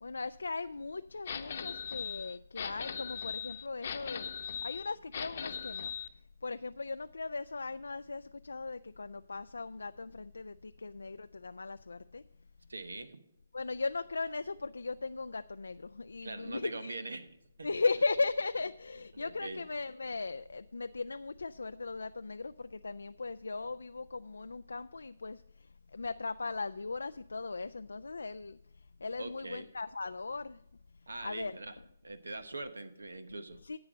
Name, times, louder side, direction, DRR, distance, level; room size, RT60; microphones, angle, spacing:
voice 1, 0.0-4.3 4.6-5.9 6.4-12.2 13.5-17.0 17.6-30.6 31.2-31.5 33.6-33.8, left 3 dB, 85° left, 12 dB, 0.3 m, -38 dB
sound 1, 1.3-6.1, left 7 dB, 55° left, 0.9 m, -39 dB
voice 2, 12.7-13.2 16.2-17.3 17.6-17.7 19.1-19.6 29.2-29.7 31.1-31.8 32.0-33.6, right 2 dB, 85° right, 12 dB, 1.0 m, -42 dB
10.5 x 7.8 x 5.1 m, 0.80 s
figure-of-eight pair, 145°, 0 cm